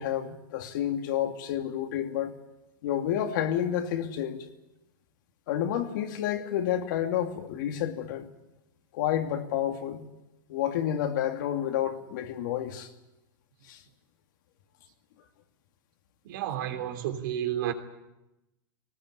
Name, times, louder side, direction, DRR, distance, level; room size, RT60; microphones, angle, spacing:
voice 1, 0.0-2.3 2.8-4.5 5.5-8.3 8.9-10.0 10.5-12.9 13.7-13.8, left 10 dB, 60° left, 2.6 m, -30 dB
voice 2, 16.2-17.7, right 11 dB, 65° right, 3.1 m, -31 dB
20.5 x 19.0 x 9.8 m
supercardioid pair, 150°, 11 cm